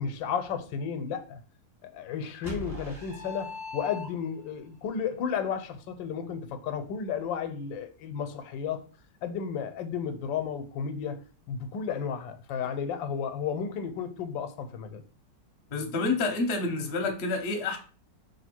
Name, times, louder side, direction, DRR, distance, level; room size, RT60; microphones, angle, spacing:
voice 1, 0.0-1.4 1.8-8.8 9.2-15.0, left 7 dB, 90° left, 1.3 m, -33 dB
sound 1, 2.4-4.5, left 3 dB, ahead, 0.9 m, -39 dB
voice 2, 15.7-17.8, left 3 dB, 50° left, 0.8 m, -28 dB
3.3 x 2.6 x 4.3 m
omnidirectional pair, 2.0 m